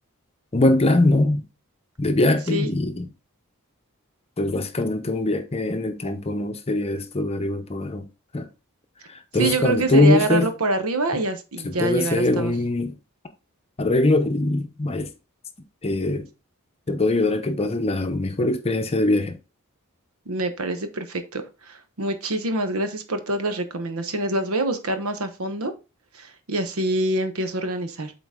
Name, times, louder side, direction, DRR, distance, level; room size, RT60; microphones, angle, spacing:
voice 1, 0.5-1.4 2.0-3.0 4.4-8.1 8.3-8.5 9.3-10.5 11.6-13.0 13.8-15.1 15.8-16.3 16.9-19.4, left 2 dB, 30° left, 0.7 m, -22 dB
voice 2, 9.4-12.5 20.3-25.7 26.1-28.1, right 2 dB, 75° right, 1.0 m, -26 dB
7.8 x 4.0 x 3.6 m
head